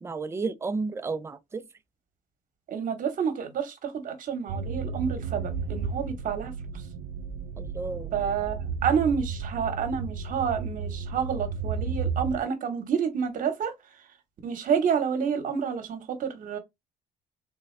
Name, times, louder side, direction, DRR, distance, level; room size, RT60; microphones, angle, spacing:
voice 1, 0.0-1.7 7.6-8.1, right 4 dB, 15° right, 0.3 m, -32 dB
voice 2, 2.7-6.5 8.1-13.7 14.4-16.6, right 7 dB, 50° right, 1.0 m, -29 dB
sound 1, 4.5-12.4, right 5 dB, 85° right, 0.4 m, -33 dB
3.5 x 2.2 x 3.2 m
cardioid pair, 110°, 17 cm